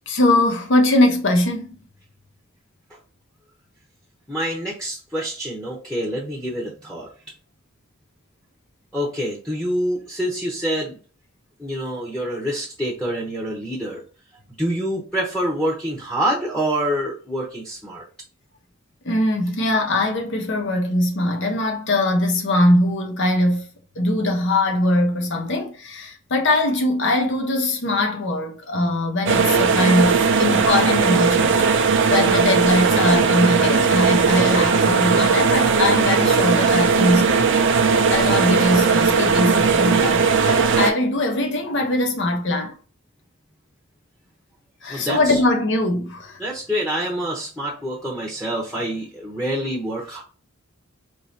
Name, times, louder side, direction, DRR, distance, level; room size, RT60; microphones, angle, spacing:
voice 1, 0.1-1.8 19.0-23.7 23.9-31.6 32.1-37.5 38.1-42.7 44.8-46.4, left 1 dB, 55° left, 0.9 m, -21 dB
voice 2, 4.3-7.1 8.9-11.0 11.6-14.0 14.6-18.0 44.9-45.4 46.4-50.2, equal, 5° left, 0.9 m, -26 dB
sound 1, 29.3-40.9, right 5 dB, 60° right, 0.5 m, -18 dB
4.7 x 3.0 x 2.8 m
head